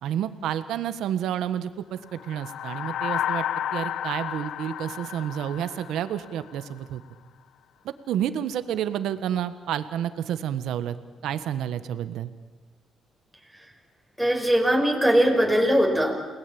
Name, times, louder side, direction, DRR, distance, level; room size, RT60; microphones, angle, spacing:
voice 1, 0.0-3.4 3.7-7.0 7.8-11.0 11.2-12.3, right 10 dB, 80° right, 11 dB, 1.4 m, -30 dB
sound 1, 2.1-6.7, left 10 dB, 75° left, 0.8 m, -32 dB
voice 2, 14.2-16.3, equal, ahead, 2 dB, 5.3 m, -21 dB
29.0 x 20.0 x 8.8 m, 1.3 s
cardioid pair, 90°, 0 cm